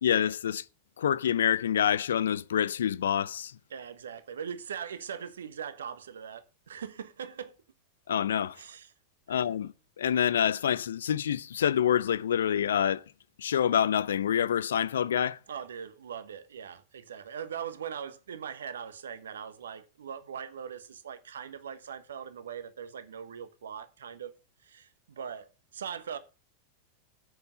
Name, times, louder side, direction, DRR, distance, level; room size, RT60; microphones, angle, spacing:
voice 1, 0.0-0.6 1.0-3.5 8.1-8.6 9.3-13.0 13.4-15.4, left 9 dB, 65° left, 0.6 m, -27 dB
voice 2, 3.7-7.5 8.5-8.9 9.3-9.4 15.5-24.3 24.6-26.2, right 7 dB, 65° right, 1.1 m, -41 dB
8.1 x 6.9 x 6.4 m
figure-of-eight pair, 90°, 0 cm